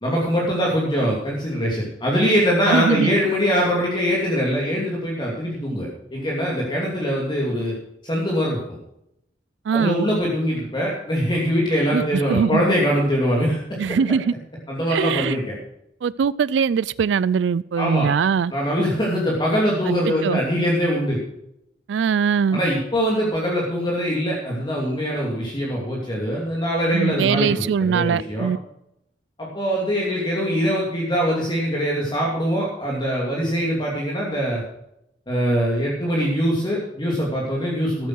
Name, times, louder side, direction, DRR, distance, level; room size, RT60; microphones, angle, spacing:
voice 1, 0.0-7.7 8.0-8.8 9.7-14.0 14.7-15.5 17.8-18.1 18.5-21.2 22.5-28.5 29.4-34.6 35.3-38.1, equal, 25° left, -3 dB, 2.7 m, -23 dB
voice 2, 2.7-3.1 9.7-10.0 11.9-12.6 13.8-14.3 14.9-15.4 16.0-18.5 19.9-20.0 20.2-20.4 21.9-22.6 26.9-28.6, right 6 dB, 85° right, 20 dB, 0.4 m, -21 dB
13.5 x 8.5 x 6.2 m, 0.78 s
head